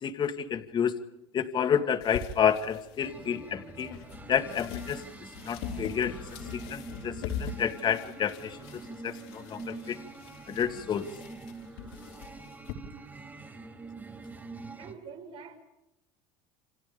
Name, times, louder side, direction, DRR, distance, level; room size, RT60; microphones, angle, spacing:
voice 1, 0.0-0.9 1.3-3.9 4.3-5.0 5.4-6.2 6.5-10.0 10.5-11.1, left 8 dB, 40° left, 2.2 m, -30 dB
sound 1, 2.0-12.7, left 6 dB, 80° left, 4.4 m, -42 dB
sound 2, 3.0-14.9, right 3 dB, 15° right, 3.5 m, -45 dB
voice 2, 14.8-15.6, right 6 dB, 50° right, 5.8 m, -45 dB
29.0 x 26.0 x 5.3 m
supercardioid pair, 105°, 12 cm